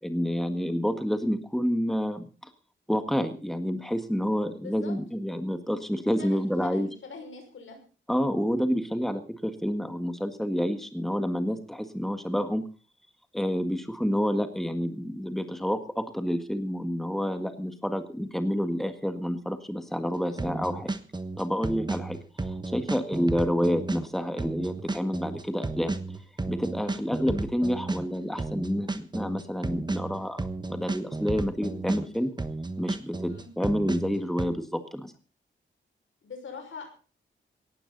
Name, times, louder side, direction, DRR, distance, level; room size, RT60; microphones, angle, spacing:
voice 1, 0.0-2.5 2.9-6.9 8.1-12.6 13.3-20.9 21.4-26.0 26.5-32.3 32.8-35.1, equal, ahead, 8 dB, 1.8 m, -29 dB
voice 2, 6.2-7.8 20.3-20.5 26.8-27.0 33.3-33.5 36.2-36.9, left 4 dB, 85° left, 5 dB, 6.0 m, -43 dB
sound 1, 20.4-32.1 32.4-34.5, right 3 dB, 20° right, 1.3 m, -33 dB
18.5 x 14.5 x 4.1 m, 0.37 s
wide cardioid pair, 120°, 20 cm